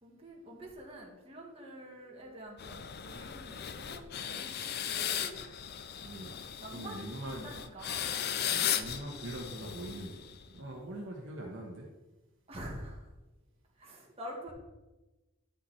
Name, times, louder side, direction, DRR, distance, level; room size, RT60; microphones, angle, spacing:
voice 1, 0.0-5.4 6.6-7.1 7.4-8.3 12.5-13.1 13.8-14.5, right 1 dB, 30° right, -2 dB, 2.0 m, -47 dB
sound 1, 2.6-10.6, left 9 dB, 50° left, 0.5 m, -37 dB
voice 2, 6.0-6.4 6.7-7.5 8.7-10.2 10.5-11.9, right 1 dB, 60° right, 0 dB, 1.1 m, -42 dB
10.0 x 5.8 x 4.3 m, 1.1 s
head